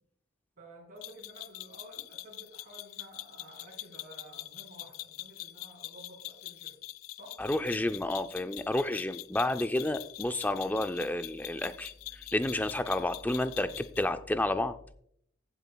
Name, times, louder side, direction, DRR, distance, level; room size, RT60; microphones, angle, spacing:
voice 1, 0.6-6.7 7.1-7.4, right 1 dB, 40° right, -6 dB, 3.9 m, -52 dB
sound 1, 1.0-14.1, left 16 dB, 80° left, 0.3 m, -44 dB
voice 2, 7.4-14.8, left 1 dB, 10° left, 10 dB, 0.4 m, -30 dB
15.0 x 8.2 x 2.3 m, 0.67 s
head